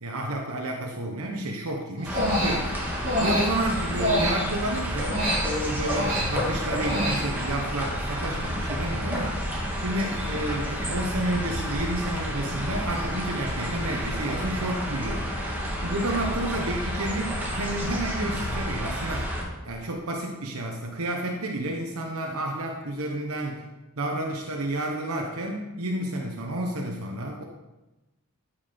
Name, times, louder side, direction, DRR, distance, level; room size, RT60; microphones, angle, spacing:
voice 1, 0.0-2.7 3.2-9.4 9.8-15.3 15.8-19.3 19.6-23.6 24.0-27.4, right 1 dB, 75° right, 1 dB, 1.1 m, -30 dB
sound 1, 2.0-19.4, equal, 10° right, 1.9 m, -30 dB
Human voice, 2.0-4.7 5.1-7.6, equal, 40° right, 4.3 m, -27 dB
13.5 x 5.8 x 5.2 m, 1.1 s
head